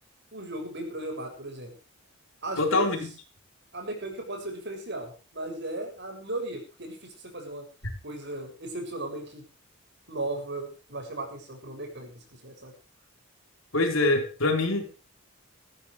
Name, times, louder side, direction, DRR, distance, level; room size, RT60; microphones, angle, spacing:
voice 1, 0.3-1.7 2.4-3.0 3.7-7.7 8.0-9.5 10.1-12.7, right 2 dB, 55° right, 4 dB, 7.2 m, -36 dB
voice 2, 2.6-3.0 13.7-14.8, left 2 dB, 65° left, 4 dB, 4.5 m, -24 dB
19.5 x 14.0 x 3.3 m, 0.35 s
head